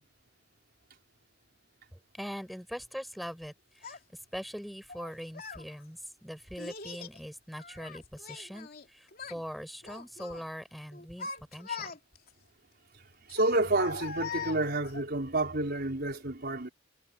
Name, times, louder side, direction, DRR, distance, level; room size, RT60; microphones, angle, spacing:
voice 1, 1.9-4.0 4.3-11.9, equal, ahead, 6.6 m, -42 dB
Child speech kid speaking, 3.8-4.0 4.9-5.6 6.6-7.2 7.6-8.9 9.1-9.4 9.8-10.4 10.9-12.3 13.3-15.0, left 5 dB, 50° left, 3.2 m, -41 dB
voice 2, 13.3-16.7, right 2 dB, 55° right, 4.6 m, -29 dB
head